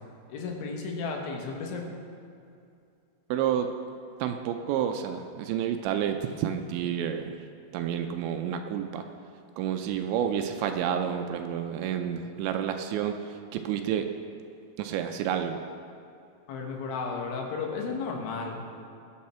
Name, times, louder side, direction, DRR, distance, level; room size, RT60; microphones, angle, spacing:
voice 1, 0.3-1.9 16.5-18.6, left 4 dB, 75° left, 1 dB, 3.8 m, -33 dB
voice 2, 3.3-3.7 4.2-7.4 7.7-9.0 9.6-14.1 14.8-15.6, right 9 dB, 80° right, 6 dB, 2.8 m, -30 dB
20.5 x 9.6 x 4.3 m, 2.5 s
omnidirectional pair, 5.5 m